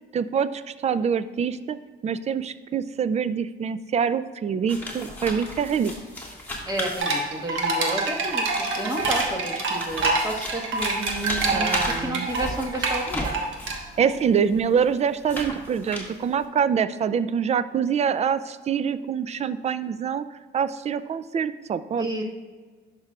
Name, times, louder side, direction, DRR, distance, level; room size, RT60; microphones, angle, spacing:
voice 1, 0.1-1.8 2.0-5.9 11.5-12.3 14.0-20.3 20.5-22.1, right 7 dB, 35° right, 14 dB, 0.4 m, -25 dB
sound 1, 4.7-7.6 8.3-13.8 14.5-16.4, left 1 dB, 10° left, 1.9 m, -35 dB
voice 2, 6.7-13.3 22.0-22.2, right 1 dB, 20° right, 1 dB, 1.4 m, -31 dB
sound 2, 7.0-14.1, right 3 dB, 80° right, 1.2 m, -26 dB
11.0 x 5.9 x 2.4 m, 1.5 s
cardioid pair, 90°, 20 cm